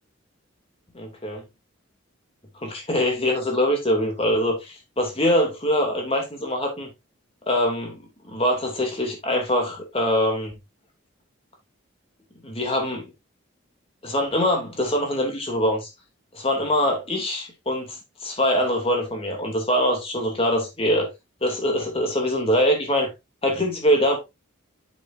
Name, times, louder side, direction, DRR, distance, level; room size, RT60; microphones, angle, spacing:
voice 1, 0.9-1.4 2.6-6.9 7.5-10.5 12.4-13.1 14.0-15.9 16.3-21.1 21.4-23.1 23.4-24.2, equal, 25° left, 2.9 m, -23 dB
7.8 x 7.7 x 2.8 m
head